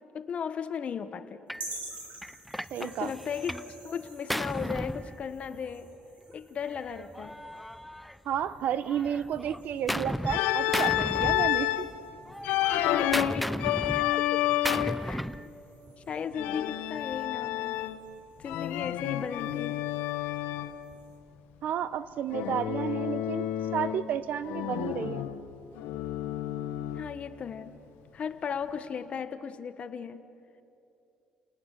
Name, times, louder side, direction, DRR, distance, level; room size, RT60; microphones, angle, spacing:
voice 1, 0.1-1.4 2.8-5.9 6.3-7.4 12.4-15.2 16.1-17.9 18.4-19.8 26.9-27.8 28.1-30.2, left 7 dB, 45° left, 11 dB, 1.3 m, -36 dB
Gunshot gunfire, 1.5-1.7 2.2-3.7 4.0-5.7 6.7-8.5 8.9-10.4 10.7-12.0 12.3-15.5, equal, ahead, 0.5 m, -35 dB
sound 1, 1.5-21.2, right 2 dB, 45° right, 6.4 m, -50 dB
voice 2, 2.7-3.1 8.2-11.9 21.6-23.5 23.7-25.3, right 9 dB, 60° right, 15 dB, 0.9 m, -31 dB
Organ, 10.3-11.9 12.4-15.1 16.3-18.1 18.5-20.8 22.3-24.1 24.4-27.2, left 13 dB, 85° left, 1.0 m, -30 dB
29.0 x 19.0 x 6.7 m, 2.8 s
cardioid pair, 105°, 3 cm